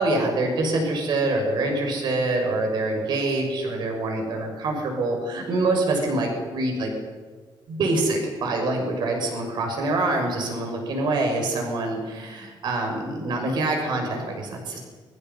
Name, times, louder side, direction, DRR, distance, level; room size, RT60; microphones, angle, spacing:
voice 1, 0.0-6.9 7.7-14.8, right 2 dB, 60° right, 2 dB, 6.4 m, -25 dB
29.0 x 24.0 x 5.6 m, 1.5 s
cardioid pair, 175°, 8 cm